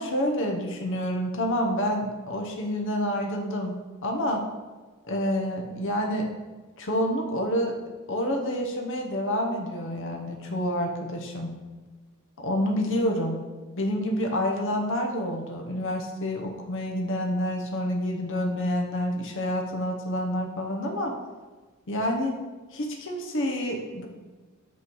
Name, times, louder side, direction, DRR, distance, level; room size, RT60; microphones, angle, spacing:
voice 1, 0.0-4.4 5.1-6.3 6.8-7.8 8.1-11.5 12.4-13.4 13.8-21.2 21.9-22.3 22.7-24.1, equal, 60° left, 2 dB, 0.8 m, -28 dB
8.5 x 3.1 x 5.4 m, 1.3 s
head